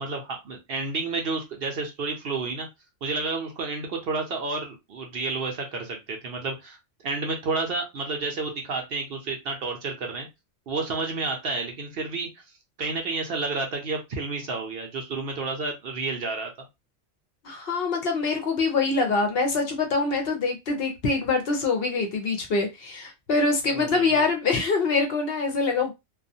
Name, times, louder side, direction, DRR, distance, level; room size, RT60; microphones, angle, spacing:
voice 1, 0.0-2.7 3.0-6.8 7.0-10.3 10.7-12.3 12.8-16.5 23.7-24.2, right 3 dB, 60° right, 2 dB, 0.7 m, -30 dB
voice 2, 17.4-25.9, left 3 dB, 60° left, 3 dB, 0.7 m, -24 dB
2.3 x 2.2 x 2.6 m, 0.22 s
omnidirectional pair, 1.2 m